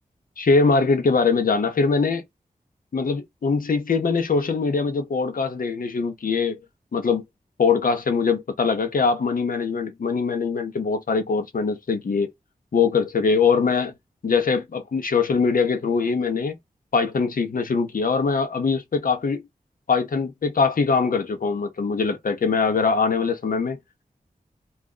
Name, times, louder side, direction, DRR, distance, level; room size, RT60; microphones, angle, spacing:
voice 1, 0.4-2.2 2.9-6.6 6.9-7.2 7.6-12.3 12.7-13.9 14.2-16.6 16.9-19.4 19.9-23.8, left 4 dB, 70° left, 0.7 m, -22 dB
2.4 x 2.2 x 3.7 m
wide cardioid pair, 55°, 15 cm